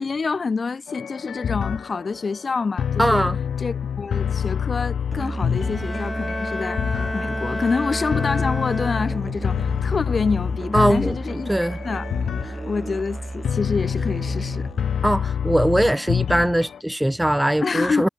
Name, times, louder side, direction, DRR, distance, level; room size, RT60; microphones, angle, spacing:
voice 1, 0.0-3.3 3.6-6.8 7.1-11.5 11.8-12.1 12.7-14.7 17.6-18.1, left 4 dB, 45° left, 0.9 m, -27 dB
sound 1, 0.9-16.8, left 8 dB, 85° left, 1.2 m, -27 dB
voice 2, 3.0-3.4 10.7-11.2 11.5-11.8 15.0-18.1, right 1 dB, 5° right, 0.4 m, -20 dB
Musical instrument, 5.1-14.9, right 2 dB, 25° right, 1.2 m, -33 dB
Bowed string instrument, 5.4-9.5, left 2 dB, 20° left, 1.5 m, -31 dB
wide cardioid pair, 100°, 0 cm